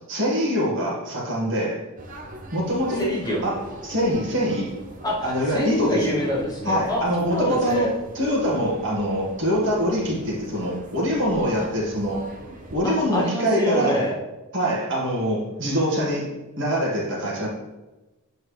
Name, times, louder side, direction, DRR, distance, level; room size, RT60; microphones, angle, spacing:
voice 1, 0.1-1.8 2.5-3.1 3.4-4.7 5.2-6.2 6.7-12.2 12.7-14.0 14.5-17.5, equal, 55° right, -4 dB, 2.0 m, -24 dB
sound 1, 2.0-12.8, right 1 dB, 35° right, 0.8 m, -42 dB
voice 2, 3.0-3.4 5.0-7.9 11.5-11.9 12.8-14.2, equal, 15° left, -4 dB, 1.2 m, -26 dB
7.9 x 4.6 x 3.4 m, 1.1 s
head